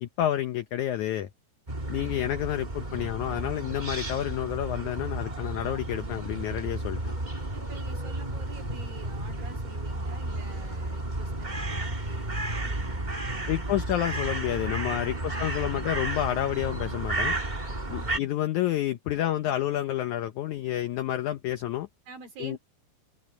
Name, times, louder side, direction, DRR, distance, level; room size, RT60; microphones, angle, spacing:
voice 1, 0.0-1.3 1.9-7.0 13.5-17.4 17.9-21.9 22.4-22.6, left 12 dB, 90° left, 1.7 m, -29 dB
sound 1, 1.7-18.2, right 2 dB, 20° right, 1.3 m, -33 dB
voice 2, 7.5-14.0 15.2-16.1 17.9-18.3 22.1-22.6, right 4 dB, 65° right, 4.6 m, -47 dB
omnidirectional pair, 4.5 m